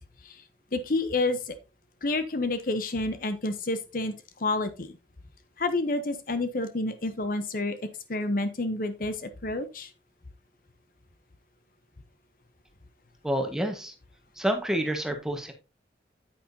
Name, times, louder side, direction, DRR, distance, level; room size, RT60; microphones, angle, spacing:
voice 1, 0.7-1.6 2.0-4.1 4.4-5.0 5.6-7.8 8.1-9.9, left 2 dB, 50° left, 10 dB, 0.9 m, -29 dB
voice 2, 13.2-13.9 14.4-15.5, right 1 dB, 5° right, 4 dB, 1.5 m, -28 dB
9.1 x 8.8 x 2.8 m, 0.28 s
head